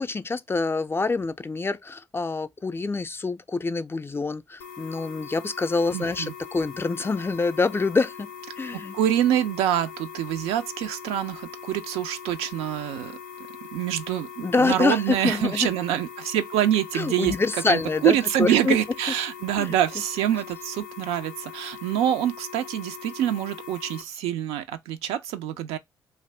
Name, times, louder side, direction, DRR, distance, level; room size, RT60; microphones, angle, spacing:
voice 1, 0.0-8.3 8.6-9.0 14.4-15.7 16.9-18.8 19.6-19.7, left 3 dB, 25° left, 0.4 m, -26 dB
sound 1, 4.6-24.0, left 7 dB, 90° left, 0.4 m, -41 dB
voice 2, 5.9-6.3 8.7-13.2 13.7-25.8, right 11 dB, 80° right, 0.4 m, -26 dB
2.6 x 2.4 x 3.0 m
hypercardioid pair, 45°, 10 cm